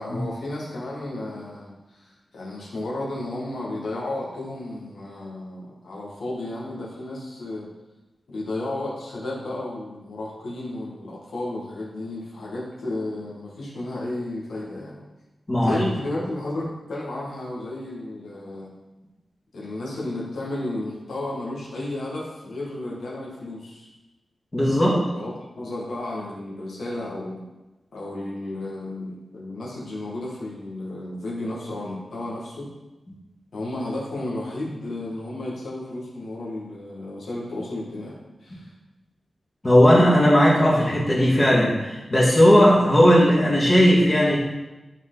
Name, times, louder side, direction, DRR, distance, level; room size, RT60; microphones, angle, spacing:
voice 1, 0.0-7.7 8.3-15.0 15.6-18.7 19.5-23.9 24.8-25.3 25.6-27.4 27.9-32.7 33.5-38.7, left 1 dB, 80° left, -5 dB, 1.6 m, -33 dB
voice 2, 15.5-15.8 24.5-25.0 39.6-44.4, equal, 25° left, -6 dB, 1.7 m, -17 dB
9.0 x 4.5 x 3.9 m, 1.1 s
wide cardioid pair, 165°, 0 cm